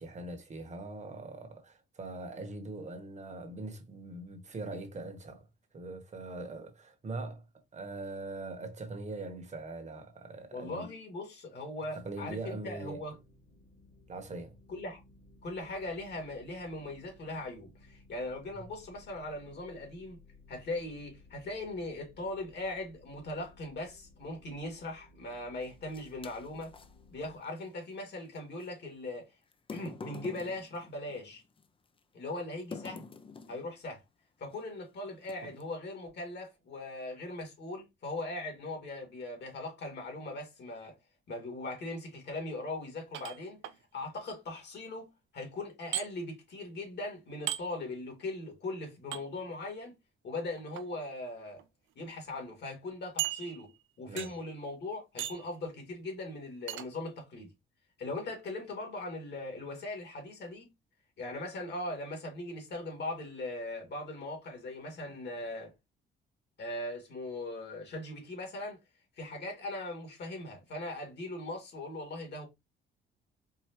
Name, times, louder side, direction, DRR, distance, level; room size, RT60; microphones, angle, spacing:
voice 1, 0.0-5.5 5.7-7.4 7.7-10.9 11.9-13.0 14.1-14.6 54.1-54.3, right 2 dB, 35° right, 1.1 m, -42 dB
voice 2, 10.5-13.1 14.7-15.0 15.4-20.2 20.5-26.7 27.1-29.3 29.7-31.4 32.1-33.1 33.5-34.0 34.4-41.0 41.3-43.6 43.9-49.9 50.2-51.6 52.0-53.7 54.0-57.5 58.0-60.7 61.2-65.7 66.6-68.8 69.2-72.5, left 2 dB, 60° left, 2.1 m, -40 dB
sound 1, 12.1-27.4, left 2 dB, 85° left, 2.5 m, -59 dB
sound 2, 25.6-26.9 28.6-28.7 29.5-31.7 32.7-33.7 34.5-34.7 35.2-35.7, left 5 dB, 25° left, 0.5 m, -46 dB
sound 3, 43.1-43.8 45.9-46.1 47.5-47.6 49.1-49.2 50.6-50.8 51.6-51.7 52.0-52.1 53.2-53.8 54.2-54.5 55.2-55.5 56.7-56.9, right 13 dB, 75° right, 0.5 m, -36 dB
4.7 x 2.6 x 3.0 m
cardioid pair, 90°, 20 cm